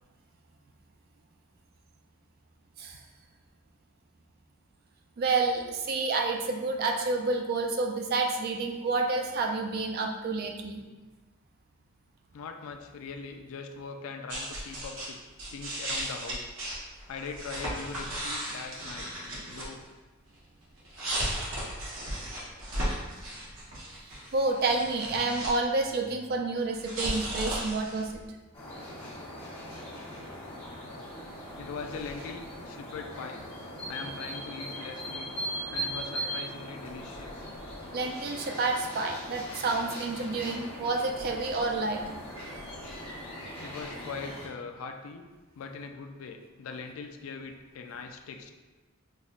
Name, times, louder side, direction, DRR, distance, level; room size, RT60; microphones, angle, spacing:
voice 1, 5.2-10.8 24.3-28.1 37.9-42.0, right 3 dB, 45° right, 3 dB, 0.4 m, -29 dB
voice 2, 12.3-15.2 15.5-16.5 17.1-19.1 19.5-19.8 22.0-22.2 30.8-31.1 31.6-35.4 35.7-37.4 43.6-45.3 45.5-48.5, left 5 dB, 75° left, 5 dB, 0.3 m, -41 dB
sound 1, 14.3-15.1 15.4-19.8 20.8-25.5 25.8-28.1, right 1 dB, 70° right, 1.0 m, -35 dB
sound 2, 28.5-44.5, equal, 25° left, 1.0 m, -40 dB
5.3 x 2.1 x 2.4 m, 1.2 s
head